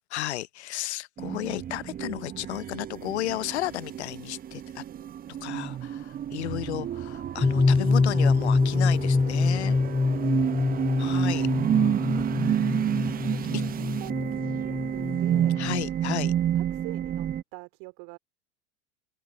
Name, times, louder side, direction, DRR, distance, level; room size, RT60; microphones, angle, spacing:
voice 1, 0.1-4.8 5.4-9.8 11.0-11.5 15.6-16.3, left 15 dB, 65° left, 0.7 m, -33 dB
sound 1, 1.2-17.4, right 10 dB, 25° right, 1.0 m, -30 dB
voice 2, 4.8-6.2 9.4-9.5 11.6-15.6 16.5-18.2, right 31 dB, 50° right, 2.5 m, -48 dB
sound 2, 7.4-15.8, left 3 dB, 10° left, 0.7 m, -25 dB
figure-of-eight pair, 80°, 36 cm